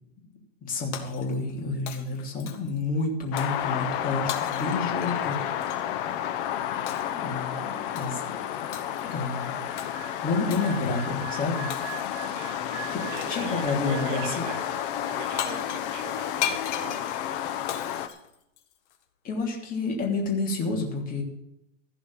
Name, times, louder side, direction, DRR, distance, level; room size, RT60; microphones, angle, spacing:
voice 1, 0.6-5.4 7.1-8.4 9.0-9.5 10.2-11.7 12.9-14.5 19.2-21.2, left 3 dB, 20° left, 0 dB, 3.0 m, -30 dB
Shatter, 0.9-1.6 1.9-2.8 3.4-3.6 4.3-5.9 6.9-7.2 8.0-8.3 8.7-9.2 9.8-9.9 10.5-10.8 11.7-12.2 13.2-13.5 15.1-15.2 15.4-19.0, left 9 dB, 65° left, 1.8 m, -37 dB
sound 1, 3.3-18.1, left 10 dB, 45° left, 1.1 m, -31 dB
sound 2, 9.0-15.4 15.6-15.9, right 13 dB, 60° right, 1.1 m, -44 dB
voice 2, 12.3-12.8 13.1-17.1, right 7 dB, 40° right, 5 dB, 1.4 m, -41 dB
15.0 x 5.1 x 8.8 m, 0.81 s
hypercardioid pair, 140°, 39 cm